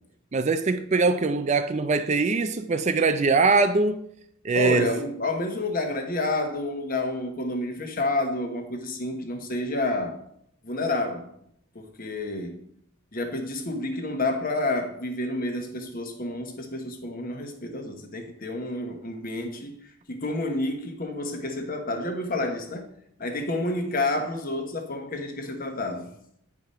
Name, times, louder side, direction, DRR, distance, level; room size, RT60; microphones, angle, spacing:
voice 1, 0.3-4.0 4.4-4.9, right 4 dB, 30° right, 0.4 m, -22 dB
voice 2, 4.5-10.2 10.6-11.3 11.7-12.6 13.1-19.7 20.1-22.9 23.2-26.1, left 2 dB, 40° left, 1.2 m, -29 dB
9.4 x 4.8 x 5.4 m
head